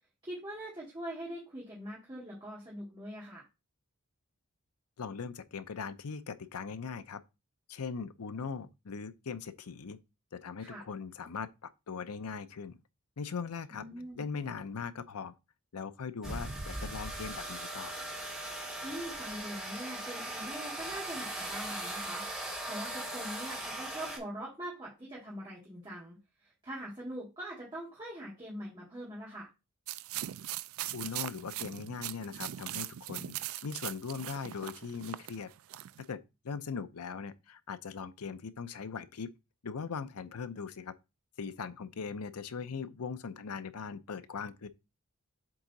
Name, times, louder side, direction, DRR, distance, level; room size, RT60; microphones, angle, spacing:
voice 1, 0.2-3.5 10.6-10.8 13.7-14.2 18.8-22.2 22.6-26.2 26.4-29.5, right 1 dB, 20° right, 1.9 m, -43 dB
voice 2, 5.0-7.2 7.7-10.0 10.3-12.8 13.2-13.8 14.1-15.3 15.7-18.0 30.9-33.3 33.6-35.5 36.1-36.2 36.4-39.3 39.6-40.9 41.4-44.7, left 5 dB, 85° left, 0.6 m, -40 dB
sound 1, 16.2-24.2, right 1 dB, 5° right, 2.1 m, -39 dB
sound 2, 29.9-36.0, right 14 dB, 70° right, 0.3 m, -40 dB
7.7 x 3.7 x 4.0 m
head